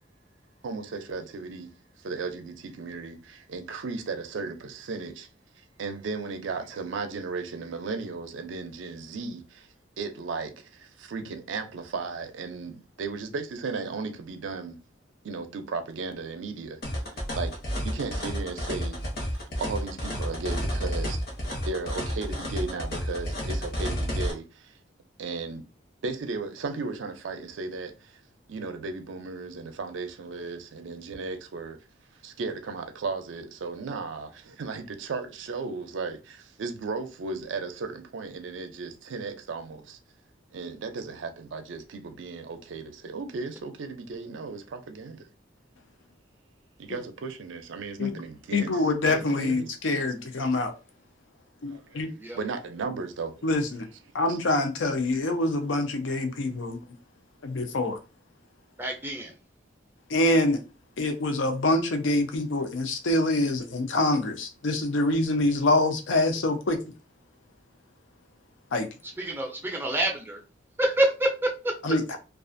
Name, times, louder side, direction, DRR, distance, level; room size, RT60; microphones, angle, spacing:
voice 1, 0.6-1.7 2.0-5.3 5.6-9.7 10.0-14.8 15.2-16.8 17.1-21.2 21.7-24.8 25.2-25.6 26.0-28.2 28.5-31.8 32.2-40.0 40.5-45.3 46.8-49.7 51.7-52.0 52.3-53.5 54.3-54.4, right 4 dB, 75° right, 0.4 m, -35 dB
sound 1, 16.8-24.3, equal, 55° left, 0.9 m, -31 dB
voice 2, 48.5-50.7 51.6-52.1 53.4-53.9 54.1-56.8 57.4-58.0 60.1-60.6 61.0-66.8 68.7-68.9 71.8-72.2, left 2 dB, 80° left, 0.5 m, -25 dB
voice 3, 58.8-59.3 69.2-70.4 70.8-71.7, right 1 dB, 10° right, 0.4 m, -27 dB
2.4 x 2.3 x 2.5 m
head